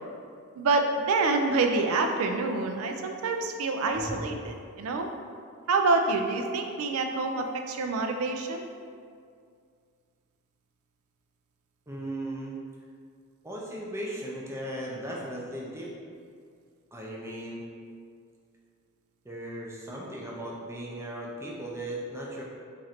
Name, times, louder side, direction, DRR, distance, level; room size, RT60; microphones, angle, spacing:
voice 1, 0.6-5.1 5.7-8.7, right 3 dB, 80° right, 5 dB, 0.4 m, -27 dB
voice 2, 11.9-12.5 13.4-15.9 16.9-17.7 19.2-22.4, right 1 dB, 10° right, -3 dB, 0.4 m, -37 dB
3.1 x 2.5 x 4.2 m, 2.2 s
head